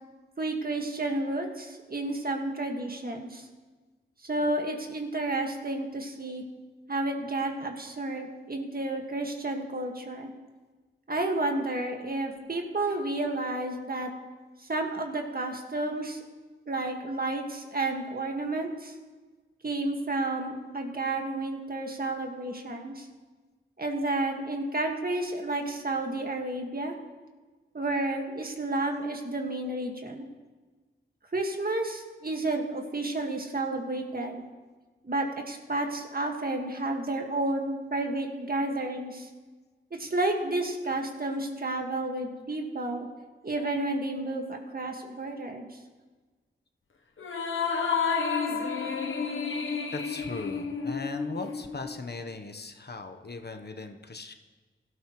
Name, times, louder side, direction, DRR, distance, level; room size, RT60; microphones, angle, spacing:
voice 1, 0.4-3.4 4.2-6.4 6.9-10.3 11.1-14.1 14.6-16.2 16.7-18.9 19.6-23.1 23.8-26.9 27.7-30.3 31.3-34.4 35.0-39.3 39.9-43.1 43.4-45.8, right 2 dB, 45° right, 3 dB, 1.9 m, -31 dB
sound 1, 47.2-51.9, left 5 dB, 75° left, 1.0 m, -30 dB
voice 2, 49.9-54.4, left 3 dB, 55° left, 6 dB, 1.1 m, -38 dB
17.5 x 12.5 x 3.2 m, 1.3 s
cardioid pair, 50°, 21 cm